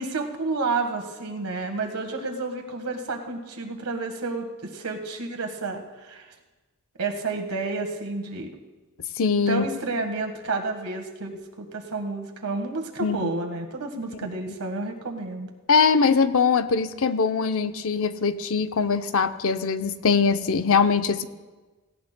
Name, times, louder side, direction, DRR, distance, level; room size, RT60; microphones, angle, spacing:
voice 1, 0.0-6.3 7.0-8.5 9.5-15.5, right 3 dB, 90° right, 4 dB, 1.5 m, -30 dB
voice 2, 9.2-9.6 13.0-13.3 15.7-21.3, left 5 dB, 65° left, 10 dB, 0.6 m, -22 dB
17.5 x 16.5 x 2.2 m, 1.3 s
head